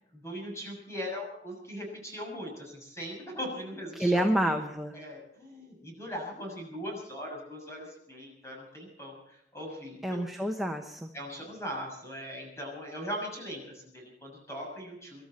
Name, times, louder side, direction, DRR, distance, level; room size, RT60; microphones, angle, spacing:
voice 1, 0.0-4.5 4.9-10.4 11.1-15.2, equal, 15° left, 0 dB, 6.6 m, -40 dB
voice 2, 3.9-5.0 10.0-11.1, right 1 dB, ahead, 2 dB, 1.0 m, -28 dB
26.0 x 12.5 x 4.3 m, 0.74 s
head